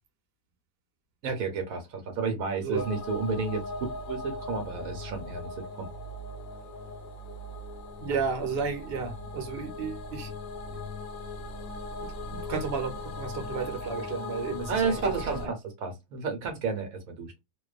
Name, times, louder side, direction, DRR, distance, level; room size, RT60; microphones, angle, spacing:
voice 1, 1.2-3.6 4.1-5.9 14.7-17.4, right 4 dB, 70° right, 1.1 m, -31 dB
sound 1, 2.8-15.5, left 2 dB, 70° left, 0.9 m, -39 dB
voice 2, 8.0-10.3 10.7-10.8 12.0-14.9 15.3-15.5, right 5 dB, 50° right, 0.9 m, -33 dB
2.5 x 2.2 x 2.3 m
omnidirectional pair, 1.6 m